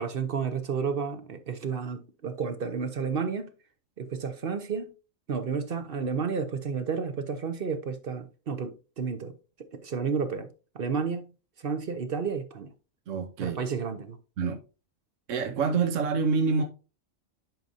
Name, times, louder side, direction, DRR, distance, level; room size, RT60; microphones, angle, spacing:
voice 1, 0.0-3.5 4.0-4.9 5.3-11.3 11.6-12.7 13.4-14.2, right 5 dB, 50° right, 0.9 m, -31 dB
voice 2, 13.1-13.6 14.4-14.6 15.3-16.6, right 5 dB, 70° right, 1.2 m, -26 dB
10.5 x 5.2 x 2.7 m
omnidirectional pair, 1.4 m